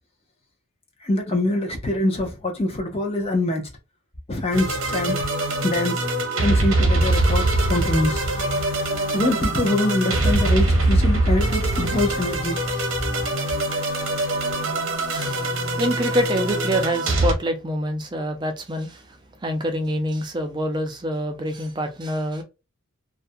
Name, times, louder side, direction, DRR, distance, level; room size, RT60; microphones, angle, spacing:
voice 1, 1.0-3.7 4.3-5.2 5.6-6.1 6.4-8.2 9.1-12.6, left 1 dB, 30° left, 0.6 m, -24 dB
sound 1, 4.5-17.3, right 2 dB, 80° right, 0.8 m, -23 dB
voice 2, 15.1-19.2 19.4-22.4, equal, 20° right, 0.5 m, -26 dB
2.4 x 2.1 x 2.6 m
head